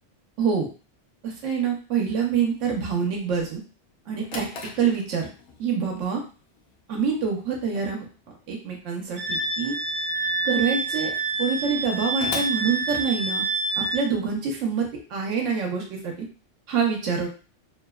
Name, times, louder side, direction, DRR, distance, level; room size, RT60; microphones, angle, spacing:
voice 1, 1.2-3.6 4.1-4.5 4.8-5.3 5.6-6.2 6.9-8.1 8.5-9.8 10.4-11.1 11.4-13.4 13.8-16.1 16.7-17.3, right 6 dB, 90° right, 1 dB, 1.0 m, -26 dB
Drawer open or close, 3.9-13.6, left 3 dB, 65° left, 0.7 m, -43 dB
Wind instrument woodwind instrument, 9.2-14.1, right 3 dB, 65° right, 1.1 m, -27 dB
2.8 x 2.0 x 2.2 m, 0.35 s
omnidirectional pair, 1.2 m